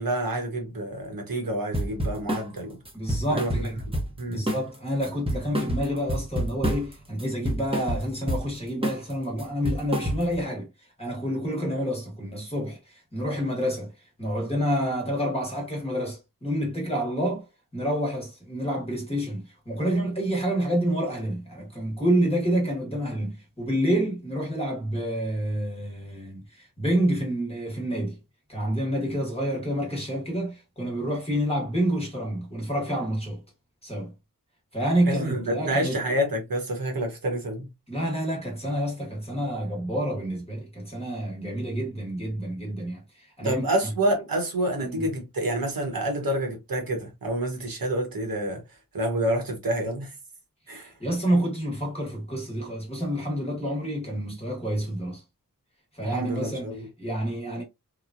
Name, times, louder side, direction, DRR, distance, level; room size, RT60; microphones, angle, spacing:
voice 1, 0.0-2.8 3.3-3.5 4.2-4.5 35.1-37.7 43.4-48.6 48.9-50.1 50.7-50.9 56.0-56.9, right 1 dB, 75° right, 1.1 m, -28 dB
sound 1, 1.7-2.5 2.9-4.2 4.5-4.8 5.0-6.9 7.2-8.5 8.8-9.1 9.4-10.4, right 1 dB, 15° right, 0.8 m, -28 dB
voice 2, 2.9-3.8 4.3-10.7 11.0-13.9 14.2-17.4 17.7-28.2 28.5-33.4 33.8-34.1 34.7-36.0 37.9-43.7 44.8-45.1 50.7-55.2 55.9-57.6, equal, 15° left, 1.1 m, -28 dB
3.0 x 2.3 x 2.4 m
wide cardioid pair, 70°, 35 cm